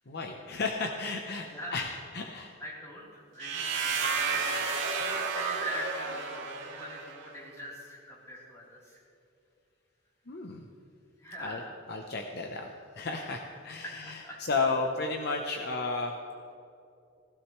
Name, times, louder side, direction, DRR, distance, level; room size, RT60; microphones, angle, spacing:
voice 1, 0.1-2.6 4.9-5.2 10.3-10.7 11.4-16.1, left 3 dB, 55° left, 3 dB, 0.8 m, -33 dB
voice 2, 1.4-1.8 2.6-9.0 11.2-11.7 13.8-14.6, equal, 15° left, -6 dB, 3.5 m, -42 dB
sound 1, 3.4-7.2, right 5 dB, 60° right, 1.9 m, -32 dB
16.5 x 15.5 x 3.2 m, 2.6 s
head